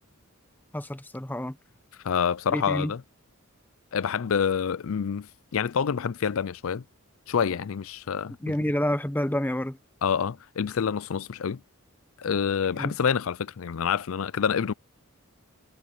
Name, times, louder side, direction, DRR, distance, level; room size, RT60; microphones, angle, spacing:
voice 1, 0.7-1.5 2.5-2.9 8.4-9.8 12.7-12.9, left 1 dB, 10° left, 0.8 m, -28 dB
voice 2, 2.0-3.0 3.9-6.8 7.3-8.6 10.0-11.6 12.2-14.7, left 7 dB, 70° left, 0.4 m, -27 dB
head